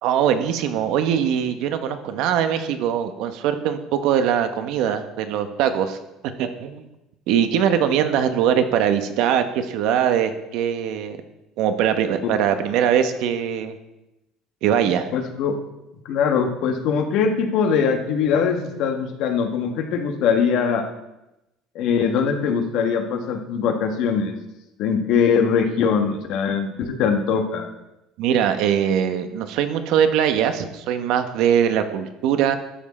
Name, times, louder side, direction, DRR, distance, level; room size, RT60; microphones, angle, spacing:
voice 1, 0.0-6.0 6.4-6.9 7.3-11.2 11.6-13.7 14.6-15.1 28.2-32.6, right 9 dB, 70° right, 8 dB, 1.0 m, -21 dB
voice 2, 15.1-15.6 16.0-20.9 21.7-24.3 24.8-27.7, left 6 dB, 65° left, 5 dB, 1.5 m, -21 dB
12.5 x 7.4 x 4.3 m, 0.94 s
supercardioid pair, 110°, 0 cm